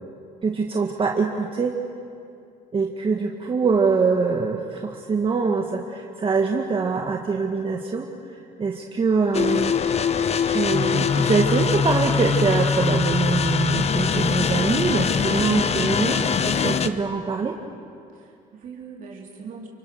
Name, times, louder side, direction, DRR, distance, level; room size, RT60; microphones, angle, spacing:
voice 1, 0.4-1.7 2.7-8.1 8.6-9.7 10.5-17.6, right 4 dB, 30° right, 1 dB, 1.8 m, -24 dB
sound 1, 9.3-16.9, left 6 dB, 40° left, 1.1 m, -22 dB
voice 2, 18.1-19.7, right 5 dB, 55° right, -2 dB, 3.8 m, -42 dB
29.0 x 26.0 x 6.5 m, 2.5 s
cardioid pair, 110°, 17 cm